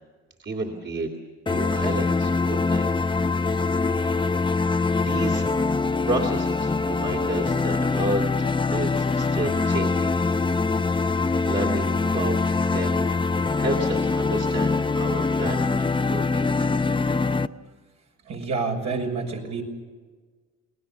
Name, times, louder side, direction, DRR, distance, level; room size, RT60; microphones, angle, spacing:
voice 1, 0.4-1.1 1.5-2.9 3.8-4.5 4.9-5.5 6.0-10.1 10.6-17.2, right 2 dB, 40° right, 2 dB, 3.0 m, -32 dB
sound 1, 1.5-17.5, left 4 dB, 15° left, 0.7 m, -23 dB
voice 2, 18.2-19.6, right 4 dB, 65° right, 1 dB, 6.5 m, -28 dB
28.5 x 19.5 x 7.1 m, 1.4 s
cardioid pair, 90°, 30 cm